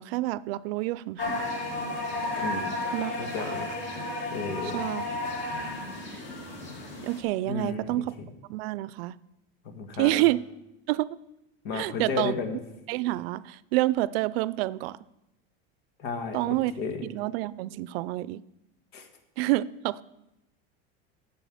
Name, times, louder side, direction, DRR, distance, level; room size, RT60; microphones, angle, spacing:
voice 1, 0.0-1.5 2.9-3.1 3.4-3.5 4.7-5.1 7.0-8.1 8.5-9.1 10.0-10.4 10.9-11.1 11.7-12.3 12.9-15.0 16.3-16.7 17.0-18.4 19.4-20.0, right 17 dB, 75° right, 0.5 m, -28 dB
sound 1, 1.2-7.2, left 2 dB, 40° left, 2.4 m, -33 dB
voice 2, 2.4-2.8 3.2-3.7 4.3-4.8 7.5-8.0 9.6-10.2 11.6-12.6 16.0-17.1 18.9-19.1, left 4 dB, 80° left, 2.0 m, -33 dB
9.1 x 6.9 x 7.8 m
supercardioid pair, 140°, 30 cm